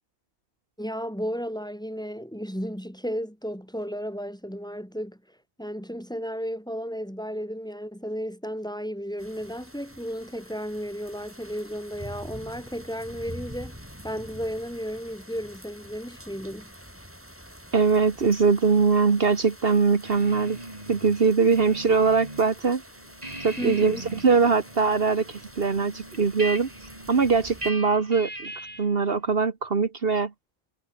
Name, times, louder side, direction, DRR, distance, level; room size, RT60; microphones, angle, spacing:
voice 1, 0.8-5.2 5.6-13.8 14.0-16.7 23.6-24.0, equal, 5° left, 6.3 m, -33 dB
sound 1, 9.2-27.7, equal, 10° right, 7.3 m, -46 dB
voice 2, 17.7-20.6 20.9-22.8 23.4-24.0 24.2-26.7 27.1-28.5 28.8-30.3, right 5 dB, 65° right, 1.7 m, -22 dB
sound 2, 20.0-22.5 22.8-29.0, right 1 dB, 35° right, 5.1 m, -39 dB
omnidirectional pair, 1.1 m